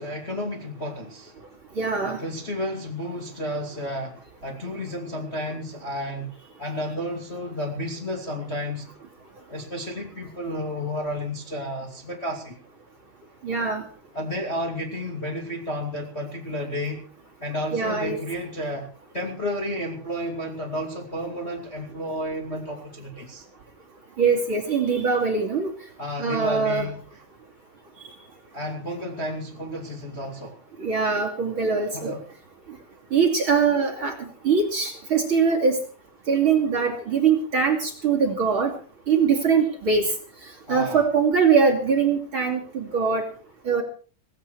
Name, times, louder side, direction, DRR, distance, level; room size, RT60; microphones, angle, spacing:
voice 1, 0.0-1.3 2.0-6.3 6.6-8.9 9.5-12.6 14.1-17.1 17.4-23.4 26.0-27.0 28.5-30.6 31.9-32.2 40.7-41.1, equal, 20° left, 1 dB, 2.2 m, -32 dB
voice 2, 1.8-2.2 13.4-13.8 17.7-18.2 24.2-25.7 26.2-26.9 30.8-32.2 33.1-35.8 36.3-38.7 39.1-40.1 40.7-43.2 43.6-43.8, right 5 dB, 35° right, 1 dB, 3.0 m, -22 dB
18.0 x 16.0 x 4.5 m, 0.40 s
omnidirectional pair, 4.3 m